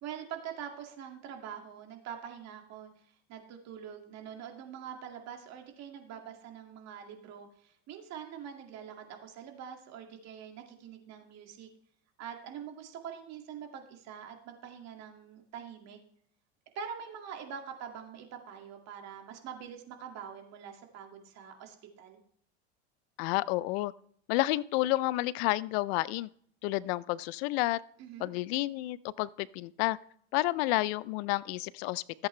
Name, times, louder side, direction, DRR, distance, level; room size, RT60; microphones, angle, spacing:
voice 1, 0.0-11.7 12.2-16.0 16.7-22.2 28.0-28.3, right 8 dB, 50° right, 3 dB, 2.2 m, -44 dB
voice 2, 23.2-23.9 24.3-26.3 26.6-27.8 28.2-30.0 30.3-32.3, left 18 dB, 65° left, 21 dB, 0.5 m, -30 dB
14.5 x 8.2 x 3.2 m, 0.64 s
supercardioid pair, 100°, 33 cm